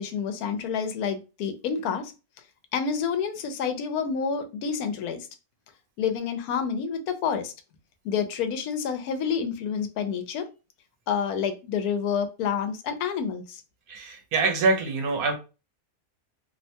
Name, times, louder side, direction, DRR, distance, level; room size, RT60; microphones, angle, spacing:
voice 1, 0.0-2.1 2.7-5.3 6.0-7.5 8.0-10.5 11.1-13.6, left 6 dB, 80° left, 1.1 m, -28 dB
voice 2, 13.9-15.3, right 3 dB, 75° right, 1.1 m, -25 dB
2.8 x 2.1 x 2.6 m
omnidirectional pair, 1.6 m